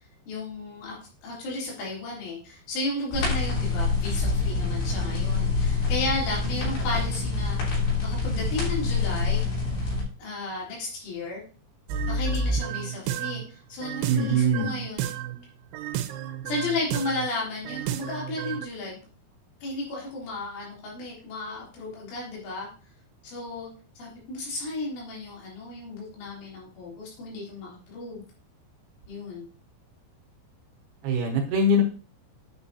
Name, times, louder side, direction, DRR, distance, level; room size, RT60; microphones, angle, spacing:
voice 1, 0.3-7.6 8.0-9.4 10.2-11.4 12.0-15.0 16.5-19.0 19.6-22.7 23.2-23.7 24.0-28.2 29.1-29.5, left 2 dB, 85° left, -4 dB, 5.9 m, -34 dB
sound 1, 3.1-10.0, left 4 dB, 65° left, 5.3 m, -26 dB
sound 2, 11.9-13.4 13.8-15.4 15.7-17.3 17.7-18.7, right 5 dB, 85° right, 2.9 m, -31 dB
voice 2, 14.1-14.7 31.0-31.8, right 1 dB, 70° right, 1 dB, 2.9 m, -22 dB
9.2 x 7.1 x 2.8 m, 0.37 s
omnidirectional pair, 5.5 m